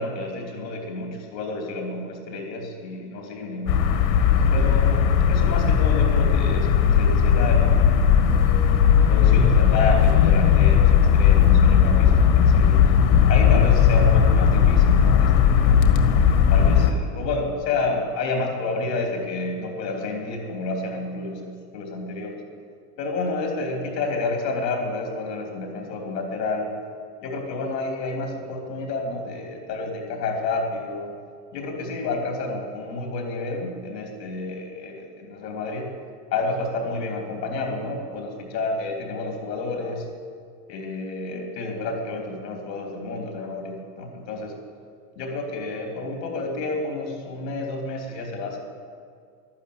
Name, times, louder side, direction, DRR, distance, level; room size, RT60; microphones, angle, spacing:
voice 1, 0.0-3.9 4.5-8.5 9.1-12.9 13.3-15.8 16.5-22.4 23.0-26.7 27.2-31.1 31.5-35.9 36.3-40.1 40.7-44.5 45.1-48.6, left 3 dB, 90° left, 2 dB, 3.2 m, -30 dB
sound 1, 3.7-16.9, left 8 dB, 75° left, 1.9 m, -17 dB
12.0 x 12.0 x 8.6 m, 2.2 s
supercardioid pair, 115°, 48 cm